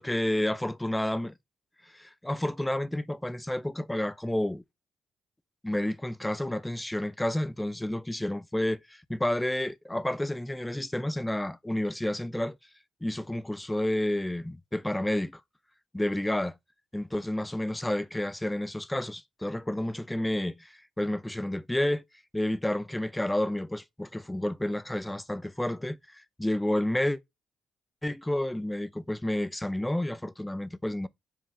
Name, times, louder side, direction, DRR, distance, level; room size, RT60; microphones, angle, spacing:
voice 1, 0.0-1.3 1.9-4.6 5.6-12.5 13.0-15.3 15.9-16.6 16.9-22.0 22.3-27.2 28.0-31.1, left 1 dB, 10° left, 0.7 m, -30 dB
7.7 x 4.9 x 3.7 m
cardioid pair, 90°, 0 cm